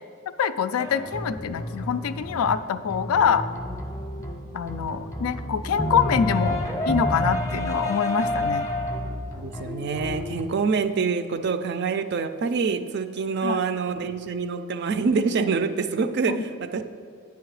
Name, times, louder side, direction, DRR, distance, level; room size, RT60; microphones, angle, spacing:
voice 1, 0.4-3.5 4.5-8.7 13.4-13.6 16.3-16.4, left 7 dB, 70° left, 12 dB, 0.3 m, -25 dB
sound 1, 0.8-10.4, left 1 dB, 15° left, 0.6 m, -30 dB
voice 2, 9.3-16.8, right 5 dB, 50° right, 10 dB, 0.4 m, -26 dB
8.4 x 5.8 x 4.8 m, 2.4 s
head